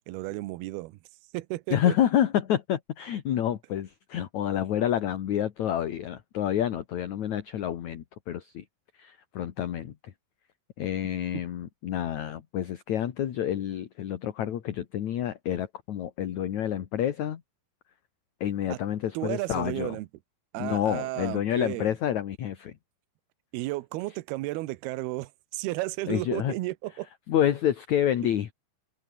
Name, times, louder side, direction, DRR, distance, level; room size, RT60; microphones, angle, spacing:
voice 1, 0.1-1.0 1.3-2.0 18.7-18.8 19.1-20.1 20.5-21.9 23.5-27.1, right 19 dB, 75° right, 2.5 m, -33 dB
voice 2, 1.7-8.6 9.0-10.1 10.8-17.4 18.4-20.0 20.6-22.8 26.1-26.5 27.3-28.5, left 10 dB, 55° left, 2.1 m, -28 dB
omnidirectional pair, 5.2 m